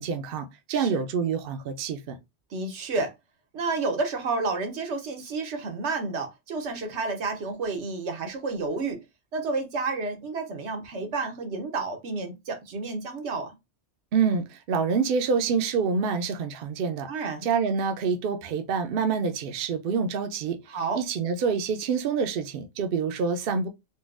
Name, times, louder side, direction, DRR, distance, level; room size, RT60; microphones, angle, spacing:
voice 1, 0.0-2.2 14.1-17.1 17.4-20.6 20.9-23.7, right 5 dB, 65° right, 0.7 m, -27 dB
voice 2, 0.7-1.0 2.5-3.1 3.5-9.0 9.3-13.5 17.1-17.5 20.7-21.0, right 3 dB, 85° right, 1.1 m, -30 dB
3.9 x 2.2 x 2.4 m
omnidirectional pair, 1.1 m